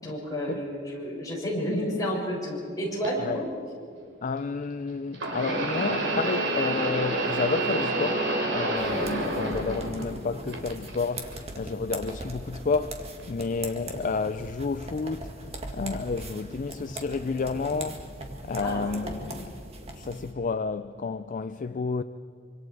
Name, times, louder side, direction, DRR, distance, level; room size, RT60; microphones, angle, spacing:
voice 1, 0.0-3.4 18.6-19.1, equal, 20° left, 6.7 m, -31 dB
sound 1, 3.0-3.1 5.1-10.2 10.5-11.3 12.1-12.2 13.2-13.3, right 2 dB, 65° right, 3.3 m, -28 dB
voice 2, 4.2-15.3 15.7-18.0 18.4-19.6 19.9-22.0, left 4 dB, 40° left, 0.4 m, -31 dB
sound 2, 8.7-20.3, right 1 dB, 35° right, 2.0 m, -40 dB
25.5 x 25.5 x 4.8 m
head